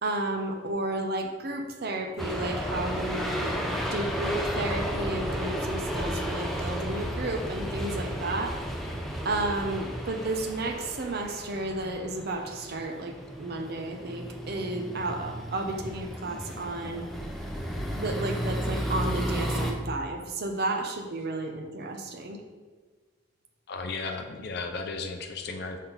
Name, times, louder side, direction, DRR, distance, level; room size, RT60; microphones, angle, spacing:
voice 1, 0.0-3.5 3.8-8.6 9.2-17.1 17.9-22.4, right 2 dB, 55° right, 4 dB, 0.7 m, -32 dB
sound 1, 2.2-19.7, equal, ahead, 0.6 m, -33 dB
voice 2, 23.7-25.8, left 3 dB, 60° left, 4 dB, 0.5 m, -35 dB
5.9 x 4.2 x 4.0 m, 1.4 s
head